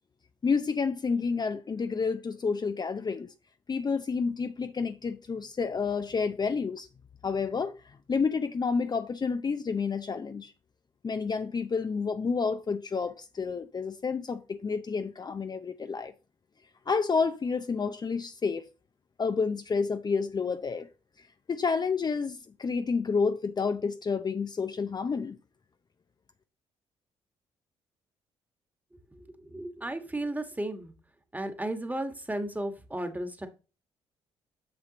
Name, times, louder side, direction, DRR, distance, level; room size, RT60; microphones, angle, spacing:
voice 1, 0.4-3.3 3.7-6.9 7.2-10.5 11.0-16.1 16.9-18.7 19.2-20.9 21.5-25.4, left 5 dB, 30° left, 0.6 m, -29 dB
voice 2, 29.1-30.9 31.3-33.5, right 1 dB, 10° right, 1.6 m, -34 dB
7.3 x 6.8 x 3.0 m
hypercardioid pair, 45°, 13 cm